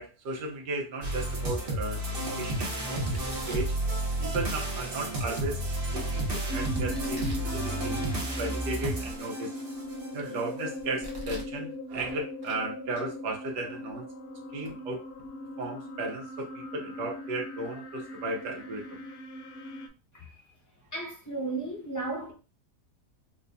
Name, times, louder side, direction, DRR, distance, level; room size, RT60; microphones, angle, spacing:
voice 1, 0.0-3.8 4.2-5.6 5.9-8.1 8.4-9.5 10.1-14.0 14.5-15.0 15.6-19.0, right 2 dB, 85° right, 1.5 m, -35 dB
Domestic sounds home sounds, 1.0-1.4 1.9-2.4 3.1-4.3 4.8-4.9 5.5-6.3 6.9-8.3 8.7-8.8 9.3-10.3 10.8-11.6 11.9-12.6 12.9-13.1 13.9-14.0 14.6-14.7 15.1-15.3, right 1 dB, 25° right, 0.6 m, -44 dB
sound 1, 1.0-10.1, right 1 dB, 40° right, 0.9 m, -32 dB
sound 2, 6.5-19.9, equal, 70° left, 0.7 m, -39 dB
voice 2, 20.9-22.3, right 3 dB, 25° left, 0.4 m, -34 dB
4.5 x 2.3 x 2.6 m
omnidirectional pair, 1.8 m